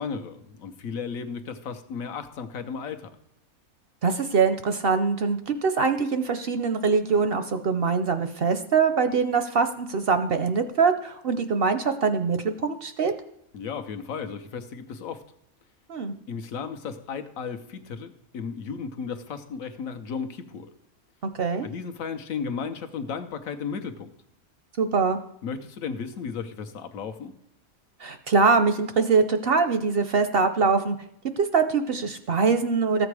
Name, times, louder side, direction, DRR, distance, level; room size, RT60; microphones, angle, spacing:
voice 1, 0.0-3.2 13.5-15.2 16.3-20.7 21.6-24.1 25.4-27.3, left 6 dB, 75° left, 8 dB, 1.3 m, -34 dB
voice 2, 4.0-13.1 15.9-16.1 21.4-21.7 24.8-25.2 28.0-31.0 31.4-33.1, right 5 dB, 60° right, 9 dB, 0.7 m, -23 dB
14.0 x 7.7 x 4.8 m, 0.74 s
omnidirectional pair, 1.5 m